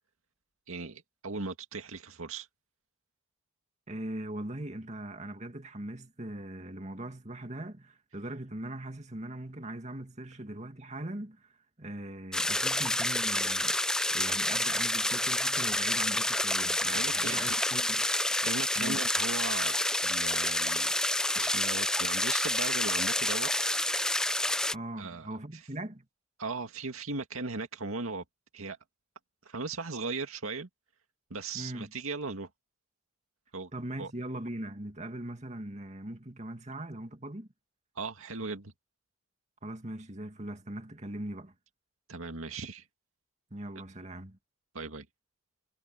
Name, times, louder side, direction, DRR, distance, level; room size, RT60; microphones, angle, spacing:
voice 1, 0.7-2.5 16.8-17.6 18.4-20.9 21.3-23.8 25.0-25.6 26.4-28.2 28.5-28.8 29.5-30.7 31.3-32.5 33.5-33.7 34.0-34.1 38.0-38.7 42.1-42.9 44.7-45.1, right 3 dB, 80° right, 2.1 m, -38 dB
voice 2, 3.9-11.5 11.8-18.0 18.8-19.0 24.7-26.0 31.5-31.9 33.7-37.5 39.6-41.5 43.5-44.4, right 1 dB, 35° right, 2.3 m, -40 dB
sound 1, 12.3-24.7, left 1 dB, 5° left, 0.4 m, -29 dB
head